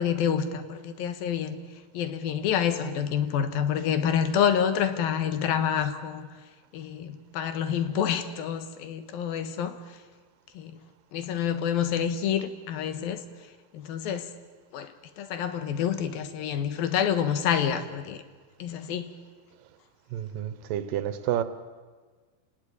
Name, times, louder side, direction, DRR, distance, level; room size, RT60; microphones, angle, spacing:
voice 1, 0.0-1.6 1.9-6.2 6.7-9.8 10.6-10.7 11.1-13.2 13.7-14.3 14.7-14.9 15.2-18.2 18.6-19.1, left 8 dB, 85° left, 3.1 m, -27 dB
voice 2, 20.1-21.4, right 11 dB, 75° right, 2.6 m, -29 dB
29.5 x 19.0 x 8.5 m
omnidirectional pair, 4.2 m